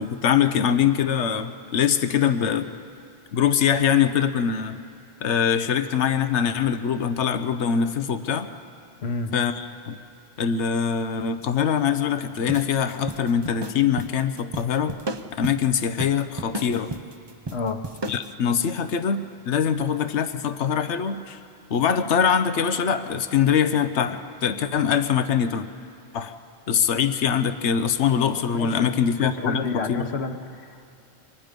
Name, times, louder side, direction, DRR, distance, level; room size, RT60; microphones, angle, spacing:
voice 1, 0.0-2.7 3.3-4.8 5.2-8.5 9.3-10.0 10.4-15.0 15.4-16.9 18.1-21.4 21.7-25.7 26.1-26.3 26.7-30.1, left 7 dB, 90° left, 10 dB, 1.1 m, -23 dB
voice 2, 9.0-9.3 17.5-17.8 28.5-28.9 29.2-30.8, left 4 dB, 70° left, 7 dB, 1.4 m, -30 dB
sound 1, 12.5-18.3, right 2 dB, 30° right, 0.6 m, -35 dB
28.5 x 25.0 x 5.2 m, 2.4 s
omnidirectional pair, 1.1 m